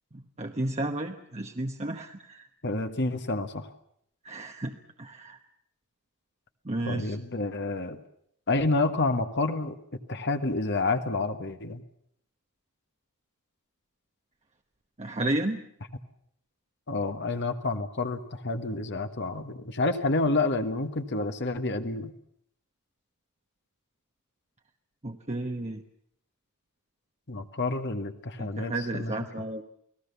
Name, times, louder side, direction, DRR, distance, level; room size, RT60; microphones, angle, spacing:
voice 1, 0.1-2.5 4.2-5.4 6.6-7.2 15.0-15.6 25.0-25.8 28.4-29.6, right 2 dB, 30° right, 3 dB, 1.1 m, -32 dB
voice 2, 2.6-3.7 6.9-8.0 8.5-9.8 10.1-11.8 16.9-22.1 27.3-29.1, left 2 dB, 50° left, 7 dB, 1.5 m, -29 dB
29.5 x 19.0 x 6.9 m, 0.69 s
head